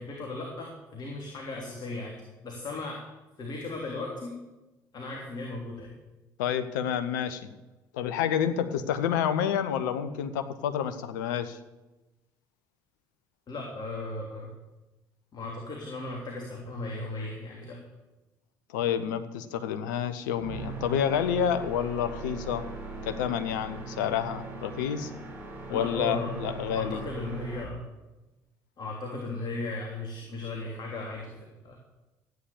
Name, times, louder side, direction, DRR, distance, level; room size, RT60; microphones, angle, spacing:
voice 1, 0.0-3.0 3.4-4.4 4.9-5.9 13.5-14.5 15.3-17.8 25.7-26.3 26.7-27.8 28.8-31.8, left 2 dB, 45° left, 0 dB, 3.1 m, -36 dB
voice 2, 6.4-7.5 7.9-11.6 18.7-22.7 23.0-25.1 25.7-27.0, left 8 dB, 75° left, 10 dB, 1.0 m, -29 dB
sound 1, 20.3-27.6, right 4 dB, 20° right, 5.3 m, -40 dB
14.5 x 9.2 x 7.2 m, 1.1 s
figure-of-eight pair, 50°, 10 cm